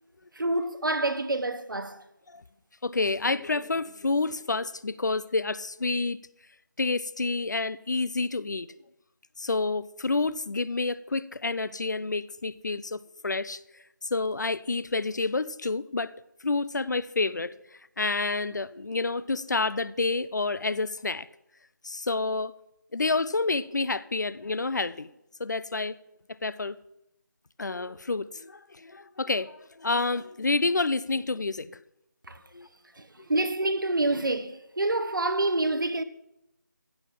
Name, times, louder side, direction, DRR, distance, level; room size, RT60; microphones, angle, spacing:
voice 1, 0.4-2.0 32.3-32.4 33.0-36.0, right 2 dB, 80° right, 1.3 m, -27 dB
voice 2, 2.8-6.2 6.8-8.8 9.4-13.6 14.0-16.1 16.4-17.5 18.0-21.3 21.8-22.5 22.9-25.1 25.4-26.0 26.3-26.8 27.6-31.8 32.5-32.7, left 3 dB, 60° left, 0.6 m, -29 dB
15.0 x 6.4 x 7.5 m
figure-of-eight pair, 165°, 11 cm